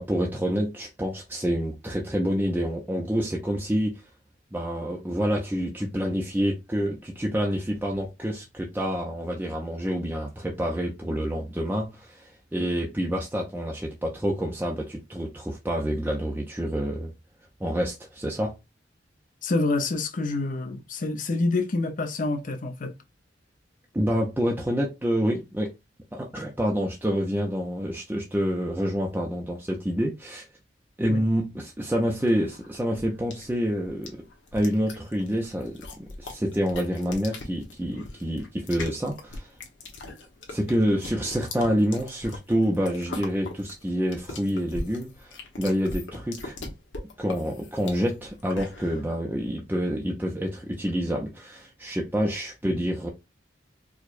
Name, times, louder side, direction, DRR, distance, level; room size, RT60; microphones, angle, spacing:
voice 1, 0.0-4.0 4.5-17.1 17.6-18.6 23.9-25.7 26.1-30.4 31.0-34.1 34.5-39.5 40.5-46.6 47.2-53.1, equal, 10° right, 0.5 m, -27 dB
voice 2, 19.4-22.9 31.1-31.2 52.6-52.8, left 2 dB, 45° left, 0.7 m, -27 dB
sound 1, 32.0-49.0, left 2 dB, 85° left, 1.0 m, -40 dB
4.6 x 2.2 x 2.5 m
head